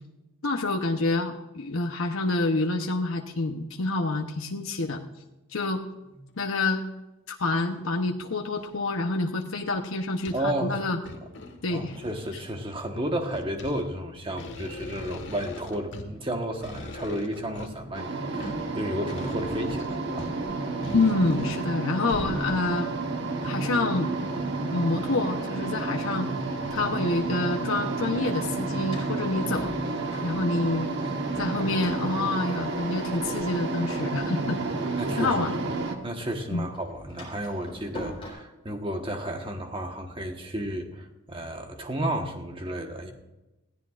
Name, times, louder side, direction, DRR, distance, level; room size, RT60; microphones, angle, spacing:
voice 1, 0.4-5.0 5.5-5.8 6.4-6.8 7.3-11.0 11.6-12.0 20.9-22.9 23.4-24.1 24.7-26.3 26.7-29.7 30.2-30.9 31.4-34.6 35.2-35.6 36.5-36.6, left 2 dB, 85° left, 3 dB, 0.9 m, -27 dB
sound 1, 5.6-5.7 6.3-6.4 7.5-7.8 8.5-9.0 9.4-9.5 9.8-10.6 10.9-12.5 13.0-22.8 23.4-23.5, left 1 dB, 60° left, 1.6 m, -41 dB
voice 2, 10.3-10.8 11.7-20.3 35.0-35.5 36.0-43.1, right 1 dB, 25° right, 4 dB, 1.3 m, -32 dB
sound 2, 17.9-36.0, right 3 dB, 55° right, 1.2 m, -30 dB
Door, 26.1-27.2 28.4-31.0 31.3-35.8 36.1-38.3, left 1 dB, 25° left, 4.3 m, -45 dB
20.0 x 14.5 x 2.5 m, 1.0 s
head